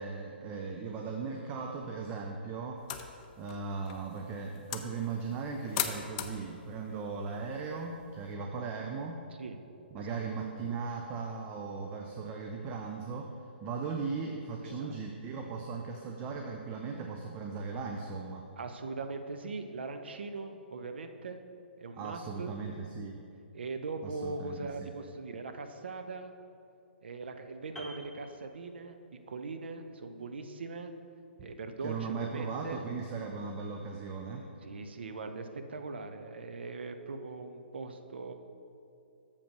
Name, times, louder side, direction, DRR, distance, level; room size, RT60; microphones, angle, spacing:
voice 1, 0.0-9.3 9.9-13.3 13.6-18.5 21.9-23.2 24.0-24.9 31.4-31.5 31.8-34.5, right 4 dB, 25° right, 2 dB, 0.6 m, -38 dB
sound 1, 2.8-8.3, left 9 dB, 35° left, 0.6 m, -41 dB
voice 2, 14.6-15.0 18.6-21.4 21.8-22.5 23.5-26.3 27.0-29.0 29.3-30.9 31.4-32.9 34.6-38.3, right 3 dB, 70° right, 7 dB, 0.7 m, -40 dB
Piano, 27.8-29.2 29.5-29.7, right 1 dB, ahead, 1.0 m, -49 dB
6.9 x 5.2 x 6.6 m, 2.7 s
figure-of-eight pair, 130°, 6 cm